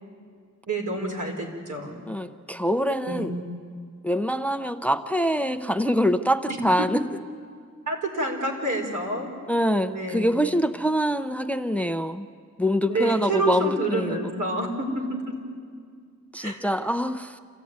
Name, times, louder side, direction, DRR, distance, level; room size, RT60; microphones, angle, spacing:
voice 1, 0.7-2.0 3.0-3.4 6.5-6.9 7.9-9.3 9.9-10.3 12.9-15.3 16.4-16.6, right 2 dB, 85° right, 0 dB, 4.4 m, -28 dB
voice 2, 2.1-3.3 4.0-7.0 9.5-12.3 12.6-14.2 16.3-17.4, equal, 5° left, 10 dB, 0.6 m, -24 dB
27.0 x 15.0 x 9.5 m, 2.1 s
wide cardioid pair, 140°, 30 cm